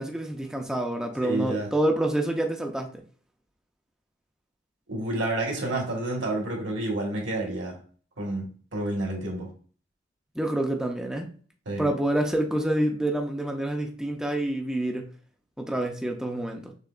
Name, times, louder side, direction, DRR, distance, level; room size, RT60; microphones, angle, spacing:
voice 1, 0.0-2.9 10.4-11.3 11.8-15.1 15.6-16.7, right 1 dB, 5° right, 2 dB, 0.5 m, -27 dB
voice 2, 1.2-1.7 4.9-7.8 8.2-8.5 8.7-9.5 11.6-11.9, right 2 dB, 70° right, 0 dB, 1.5 m, -29 dB
6.5 x 3.0 x 2.4 m, 0.43 s
head